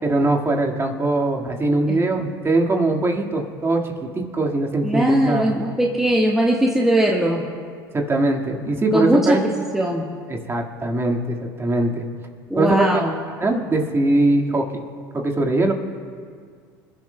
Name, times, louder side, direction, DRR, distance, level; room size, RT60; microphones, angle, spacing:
voice 1, 0.0-5.5 7.9-9.4 10.3-12.1 12.6-12.8 13.4-14.8 15.1-15.7, right 2 dB, 20° right, 2 dB, 1.9 m, -21 dB
voice 2, 4.8-7.4 8.9-9.5 9.7-10.0 12.5-13.1, equal, 5° right, -2 dB, 1.3 m, -20 dB
28.0 x 12.5 x 2.3 m, 2.1 s
hypercardioid pair, 80°, 12 cm